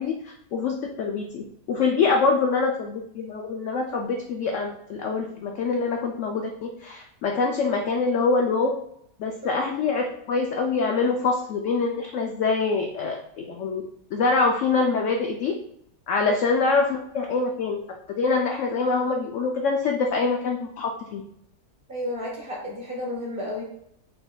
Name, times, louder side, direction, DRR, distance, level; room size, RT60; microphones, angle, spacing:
voice 1, 0.0-8.7 9.2-13.8 14.1-15.6 16.1-17.8 18.2-21.2, left 4 dB, 80° left, 2 dB, 0.6 m, -25 dB
voice 2, 21.9-23.6, left 1 dB, 35° right, -4 dB, 1.5 m, -32 dB
5.3 x 3.9 x 2.2 m, 0.73 s
omnidirectional pair, 1.8 m